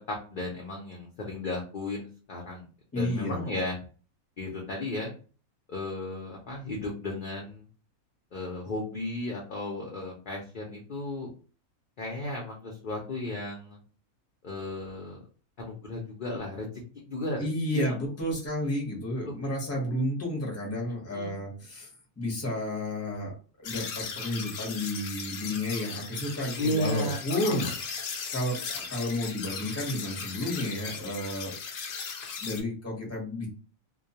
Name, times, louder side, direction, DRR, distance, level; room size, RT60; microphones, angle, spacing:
voice 1, 0.1-2.7 2.9-3.8 4.4-5.1 5.7-7.6 8.3-11.3 12.0-13.8 14.4-15.2 15.6-16.7 17.1-17.5 17.7-17.9 19.3-19.4 21.1-21.3 26.6-27.7, left 1 dB, 55° left, -2 dB, 0.6 m, -34 dB
voice 2, 2.9-3.5 17.4-21.9 22.2-23.3 23.6-27.7 28.3-31.5 32.4-33.5, left 1 dB, 15° left, -2 dB, 0.7 m, -31 dB
sound 1, 23.6-32.6, left 6 dB, 70° left, 0.9 m, -37 dB
2.3 x 2.2 x 2.7 m, 0.37 s
omnidirectional pair, 1.5 m